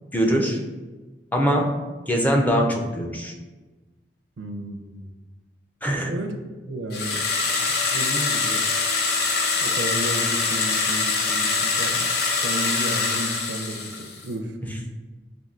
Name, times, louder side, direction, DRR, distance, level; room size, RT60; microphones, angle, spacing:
voice 1, 0.1-0.6 1.3-1.7 2.1-3.3 5.8-6.1, equal, 10° left, 1 dB, 0.4 m, -22 dB
voice 2, 4.4-5.1 5.9-6.4 6.7-7.6 7.9-8.7 9.6-14.6, right 1 dB, 80° right, 5 dB, 0.5 m, -33 dB
sound 1, 6.9-14.2, left 4 dB, 65° left, 0.6 m, -24 dB
6.7 x 2.5 x 2.4 m, 1.2 s
head